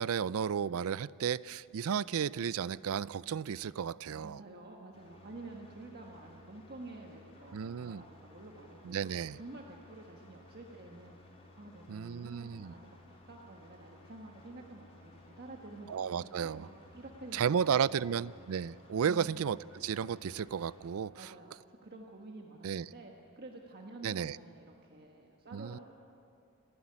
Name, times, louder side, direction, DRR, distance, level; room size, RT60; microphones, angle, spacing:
voice 1, 0.0-4.4 7.5-8.0 8.8-9.4 11.9-12.7 15.9-16.7 17.3-21.3 22.6-22.9 24.0-24.4 25.5-25.8, right 7 dB, 65° right, 0.4 m, -33 dB
voice 2, 4.1-15.9 16.2-18.2 19.0-19.3 21.1-25.8, right 2 dB, 45° right, 1.5 m, -50 dB
sound 1, 4.9-20.9, left 2 dB, 30° left, 3.9 m, -58 dB
26.5 x 11.5 x 9.7 m
head